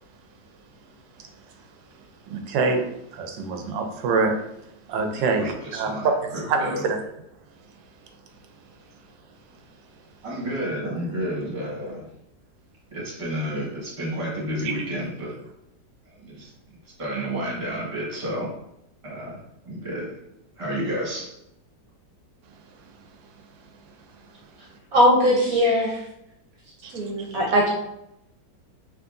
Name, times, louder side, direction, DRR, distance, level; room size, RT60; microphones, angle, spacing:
voice 1, 2.3-2.9 3.1-4.3 4.9-7.0 14.6-14.7 26.8-27.3, right 4 dB, 90° right, 4 dB, 1.3 m, -25 dB
voice 2, 5.1-6.8 10.2-12.1 12.9-15.4 16.2-16.5 17.0-18.5 19.0-20.2 20.6-21.3, equal, 25° right, -4 dB, 0.9 m, -31 dB
voice 3, 24.9-26.1 26.9-27.7, equal, 65° right, -2 dB, 1.0 m, -20 dB
3.6 x 2.9 x 2.5 m, 0.81 s
omnidirectional pair, 1.9 m